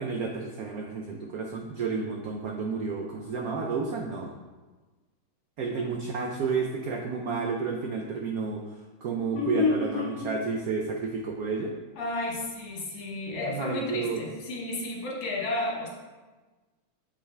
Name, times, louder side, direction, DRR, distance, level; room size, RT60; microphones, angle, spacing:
voice 1, 0.0-4.3 5.6-8.6 9.0-11.7 13.5-14.2, right 4 dB, 85° right, 2 dB, 0.7 m, -31 dB
voice 2, 5.7-6.1 9.3-10.2 12.0-15.9, left 3 dB, 70° left, -3 dB, 2.0 m, -31 dB
7.2 x 5.0 x 3.3 m, 1.3 s
omnidirectional pair, 2.2 m